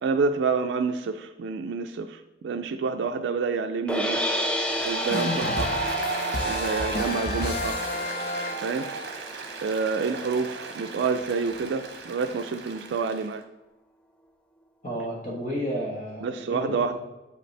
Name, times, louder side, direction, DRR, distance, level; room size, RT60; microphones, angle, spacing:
voice 1, 0.0-4.2 4.8-5.9 6.5-7.9 8.6-9.0 9.6-13.4 16.2-16.9, right 4 dB, 80° right, 7 dB, 0.3 m, -28 dB
sound 1, 3.9-10.0, equal, 5° left, 0.5 m, -32 dB
Applause, 4.6-13.3, right 4 dB, 60° right, 0.9 m, -35 dB
sound 2, 5.1-9.0, left 2 dB, 60° left, 0.7 m, -31 dB
voice 2, 14.8-16.9, equal, 45° left, -3 dB, 1.3 m, -32 dB
8.0 x 5.2 x 3.3 m, 1.0 s
head